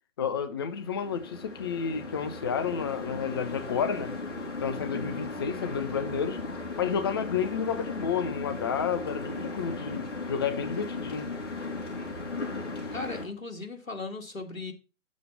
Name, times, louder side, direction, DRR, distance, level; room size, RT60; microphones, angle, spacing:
voice 1, 0.2-4.1 4.6-6.4 6.8-11.3, left 7 dB, 20° left, 0.6 m, -31 dB
cart with plastic wheels on asphalt outside store, 0.6-13.3, left 3 dB, 60° left, 5.2 m, -37 dB
voice 2, 12.9-14.7, left 3 dB, 90° left, 2.3 m, -37 dB
8.3 x 7.3 x 4.6 m
figure-of-eight pair, 140°, 39 cm